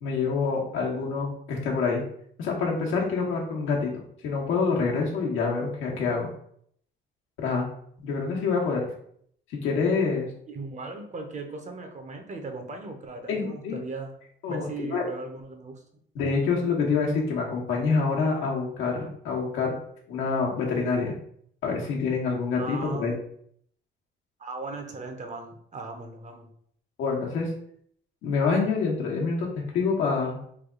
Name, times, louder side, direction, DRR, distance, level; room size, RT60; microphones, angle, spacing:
voice 1, 0.0-2.0 2.4-6.3 7.4-7.7 8.0-8.9 9.5-10.3 13.3-13.8 14.4-15.0 16.1-19.8 20.1-21.2 21.6-23.1 27.0-27.5 28.2-29.5 29.7-30.4, left 4 dB, 90° left, -1 dB, 1.0 m, -26 dB
voice 2, 10.5-14.1 14.5-15.8 22.5-23.2 24.4-26.5, right 3 dB, 35° right, 4 dB, 0.7 m, -38 dB
3.3 x 2.3 x 3.7 m, 0.65 s
cardioid pair, 90°, 20 cm